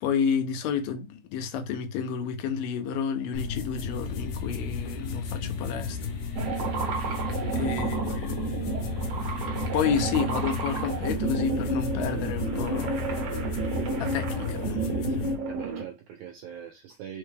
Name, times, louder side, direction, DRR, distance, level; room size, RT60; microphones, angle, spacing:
voice 1, 0.0-6.0 7.6-8.6 9.7-13.0 14.0-14.9 15.2-15.3, left 7 dB, 85° left, 2.3 m, -30 dB
sound 1, 3.3-15.4, left 5 dB, 70° left, 2.0 m, -34 dB
sound 2, 6.4-15.8, right 3 dB, 65° right, 1.7 m, -31 dB
voice 2, 7.0-7.7 8.1-8.2 15.5-17.2, right 9 dB, 85° right, 1.7 m, -42 dB
5.8 x 2.2 x 3.2 m
omnidirectional pair, 4.0 m